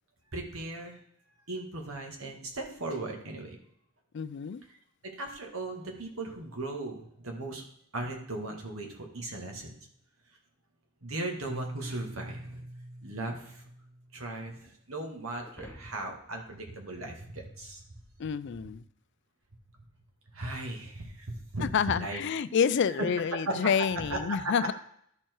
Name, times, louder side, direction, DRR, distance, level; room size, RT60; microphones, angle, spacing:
voice 1, 0.3-1.0 1.5-3.6 5.0-7.6 7.9-9.8 11.0-12.6 13.0-13.6 14.1-17.8 20.3-21.7 22.0-22.2 23.0-23.1 23.5-23.6 24.0-24.5, right 2 dB, 80° right, 2 dB, 2.0 m, -37 dB
voice 2, 4.1-4.6 18.2-18.8 21.6-24.7, left 7 dB, 55° left, 16 dB, 0.4 m, -28 dB
Keyboard (musical), 11.5-14.4, right 1 dB, 25° right, 0.6 m, -43 dB
sound 1, 15.4-17.9, left 1 dB, 10° left, 0.8 m, -53 dB
12.5 x 4.6 x 4.6 m, 0.68 s
head